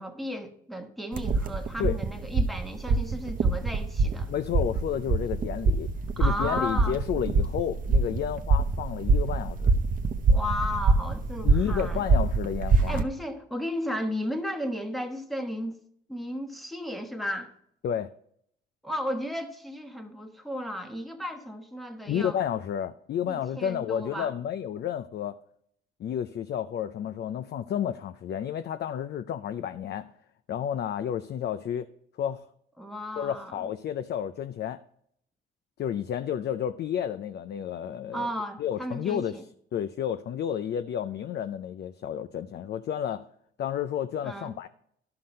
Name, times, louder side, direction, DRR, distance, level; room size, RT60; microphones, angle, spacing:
voice 1, 0.0-4.3 6.2-7.0 10.3-12.1 12.9-15.8 16.1-17.5 18.8-22.4 23.3-24.3 32.8-33.7 38.1-39.4 44.2-44.5, equal, ahead, 1.3 m, -34 dB
sound 1, 1.1-13.0, right 3 dB, 45° right, 0.8 m, -25 dB
voice 2, 4.3-5.9 6.2-9.7 11.4-13.0 17.8-18.1 22.1-25.4 26.0-30.1 30.5-31.9 32.2-32.4 33.2-34.8 35.8-38.3 38.6-39.4 39.7-43.3 43.6-44.7, left 9 dB, 55° left, 0.5 m, -31 dB
11.5 x 5.9 x 5.2 m
cardioid pair, 90°, 20 cm